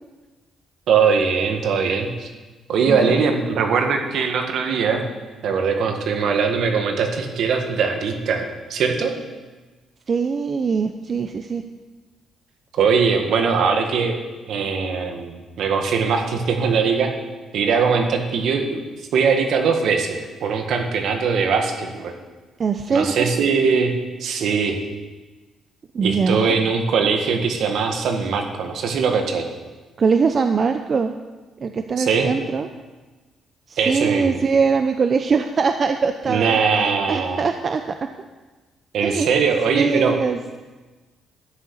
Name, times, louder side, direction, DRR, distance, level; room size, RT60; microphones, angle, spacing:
voice 1, 0.9-2.3 2.7-5.0 5.4-9.1 12.7-14.2 14.5-17.1 17.5-18.8 19.1-22.1 22.9-23.9 24.2-24.8 26.0-29.5 32.0-32.3 33.8-34.4 36.3-37.4 38.9-40.1, right 5 dB, 75° right, 4 dB, 1.8 m, -21 dB
voice 2, 2.9-3.2 10.1-11.6 22.6-23.3 25.9-26.6 30.0-31.1 31.6-32.7 33.7-36.6 37.1-38.1 39.0-39.3 39.7-40.6, right 5 dB, 45° right, 7 dB, 0.7 m, -22 dB
12.5 x 6.7 x 8.7 m, 1.2 s
cardioid pair, 90°, 0 cm